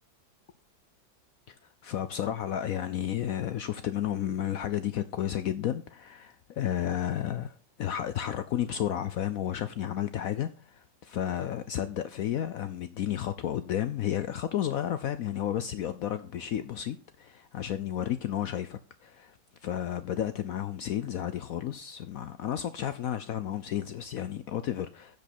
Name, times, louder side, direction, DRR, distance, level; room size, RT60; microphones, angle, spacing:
voice 1, 1.8-19.4 19.6-25.2, left 10 dB, 70° left, 0.8 m, -32 dB
15.5 x 5.3 x 4.3 m
omnidirectional pair, 2.0 m